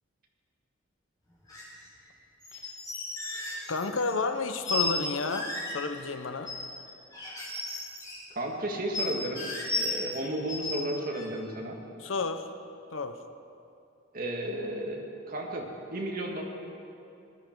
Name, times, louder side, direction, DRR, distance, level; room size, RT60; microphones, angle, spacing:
sound 1, 1.5-1.7 2.4-4.1 4.7-5.0 5.3-5.7 6.5-6.8 7.1-8.2 8.9-10.2 10.5-10.7 11.1-11.2, left 3 dB, 20° left, 4.4 m, -34 dB
voice 1, 3.7-6.5 12.0-12.5 12.9-13.2, left 3 dB, 75° left, 8 dB, 0.8 m, -31 dB
voice 2, 8.3-9.5 9.8-11.8 14.1-16.4, right 1 dB, 45° right, 0 dB, 1.9 m, -33 dB
19.5 x 12.0 x 4.6 m, 2.6 s
head